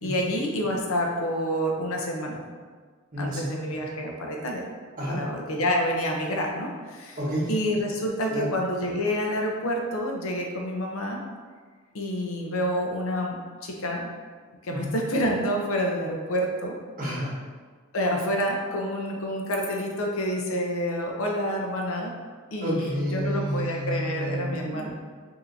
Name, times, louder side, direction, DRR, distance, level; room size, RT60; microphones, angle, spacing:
voice 1, 0.0-2.4 3.2-4.6 5.1-7.2 7.5-11.2 11.9-14.2 14.6-16.8 17.9-22.1 22.5-24.9, equal, 70° left, 0 dB, 0.7 m, -28 dB
voice 2, 3.1-3.5 5.0-5.2 7.2-7.5 8.3-8.5 14.7-14.9 17.0-17.4 22.6-24.9, equal, 40° right, -8 dB, 1.4 m, -30 dB
5.4 x 2.8 x 2.7 m, 1.5 s
head